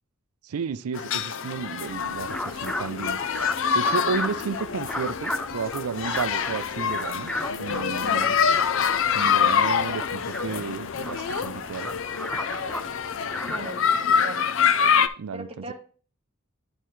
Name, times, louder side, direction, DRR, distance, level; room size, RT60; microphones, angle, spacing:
voice 1, 0.4-3.2 3.7-8.3 9.0-12.0 12.3-12.4 15.2-15.5, right 6 dB, 85° right, 0.4 m, -32 dB
sound 1, 0.9-15.1, left 7 dB, 60° left, 0.5 m, -26 dB
sound 2, 1.9-13.7, left 1 dB, 5° left, 0.4 m, -36 dB
voice 2, 8.0-8.4 13.4-14.5 15.3-15.7, right 2 dB, 25° right, 1.1 m, -38 dB
11.0 x 4.4 x 3.1 m
head